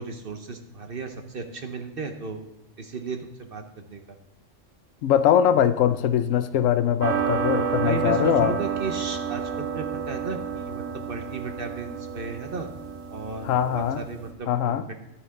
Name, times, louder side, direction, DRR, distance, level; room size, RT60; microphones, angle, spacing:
voice 1, 0.0-2.4 2.8-4.2 6.8-7.0 7.8-12.7 13.1-14.9, right 4 dB, 50° right, 6 dB, 1.0 m, -35 dB
voice 2, 5.0-8.6 13.4-14.0 14.5-14.8, left 9 dB, 90° left, 12 dB, 1.0 m, -22 dB
sound 1, 7.0-14.3, right 7 dB, 80° right, 1.2 m, -30 dB
11.5 x 9.2 x 3.7 m, 0.95 s
omnidirectional pair, 1.3 m